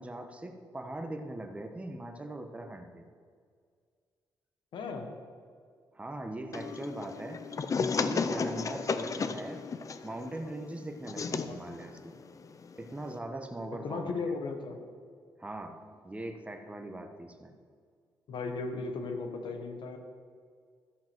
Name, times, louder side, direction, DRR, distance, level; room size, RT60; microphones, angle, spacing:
voice 1, 0.0-3.0 5.9-7.4 7.9-9.6 10.0-12.2 12.8-14.1 15.4-15.8 16.0-17.5, right 1 dB, 15° right, 4 dB, 1.1 m, -40 dB
voice 2, 4.7-5.1 11.4-11.6 13.7-14.8 18.3-20.0, left 4 dB, 80° left, 5 dB, 1.2 m, -36 dB
sound 1, 6.5-13.2, left 5 dB, 45° left, 0.5 m, -34 dB
13.5 x 5.2 x 6.0 m, 2.1 s
cardioid pair, 95°, 8 cm